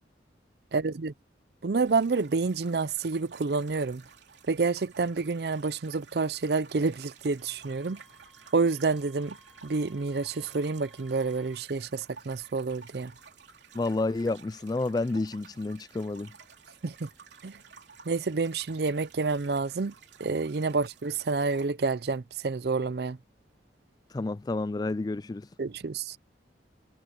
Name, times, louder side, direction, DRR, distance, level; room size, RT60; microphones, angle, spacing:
voice 1, 0.7-1.1 1.6-4.0 4.5-8.0 8.5-9.4 9.6-13.1 16.8-17.1 17.4-17.5 18.1-19.9 20.2-23.2 25.6-26.2, right 4 dB, 60° right, 0.5 m, -28 dB
sound 1, 1.8-21.7, right 6 dB, 80° right, 2.9 m, -53 dB
Wind instrument woodwind instrument, 7.4-11.7, equal, ahead, 6.0 m, -60 dB
voice 2, 13.7-16.3 24.1-25.5, left 2 dB, 20° left, 0.3 m, -30 dB
head